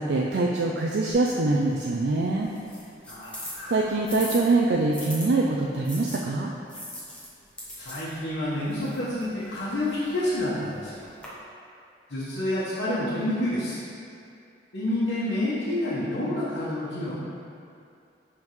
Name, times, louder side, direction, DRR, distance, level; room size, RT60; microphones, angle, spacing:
voice 1, 0.0-2.5 3.7-6.5, right 2 dB, 65° right, -2 dB, 0.4 m, -24 dB
sound 1, 1.1-5.3 5.8-11.3, left 1 dB, 5° left, 1.0 m, -42 dB
voice 2, 3.1-3.8 7.8-11.0 12.1-13.8 14.7-17.1, left 1 dB, 85° left, -10 dB, 1.3 m, -28 dB
10.5 x 3.6 x 3.1 m, 2.5 s
head